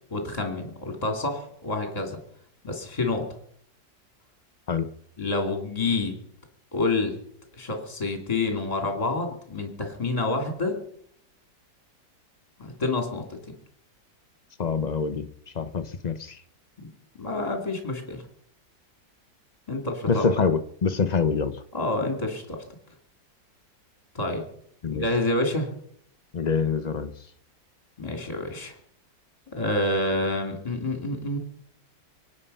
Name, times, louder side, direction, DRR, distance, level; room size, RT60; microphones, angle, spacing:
voice 1, 0.1-2.2 2.6-3.2 5.2-6.1 6.7-7.1 7.6-10.8 12.6-13.2 17.2-18.2 19.7-20.3 21.7-22.6 24.1-24.4 24.9-25.7 28.0-28.7 29.5-31.4, left 2 dB, 20° left, 4 dB, 2.8 m, -28 dB
voice 2, 14.6-15.3 15.5-16.4 20.1-21.6 24.8-25.0 26.3-27.1, left 5 dB, 50° left, 11 dB, 0.5 m, -25 dB
24.0 x 9.4 x 5.6 m, 0.68 s
omnidirectional pair, 1.9 m